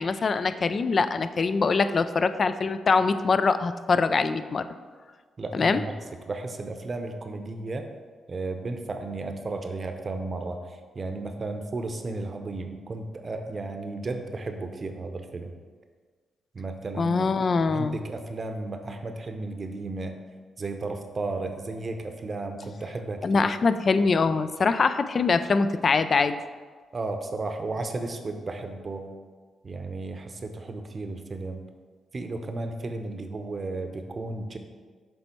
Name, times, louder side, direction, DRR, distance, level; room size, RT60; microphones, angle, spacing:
voice 1, 0.0-4.7 5.5-5.8 17.0-18.0 23.2-26.4, left 4 dB, 50° left, 11 dB, 0.3 m, -23 dB
voice 2, 5.4-5.9 6.3-7.9 8.3-15.5 16.5-17.3 17.7-20.2 20.6-23.5 26.9-29.1 29.6-31.6 32.1-34.6, right 3 dB, 45° right, 6 dB, 0.7 m, -34 dB
6.9 x 3.4 x 4.4 m, 1.5 s
supercardioid pair, 55°, 0 cm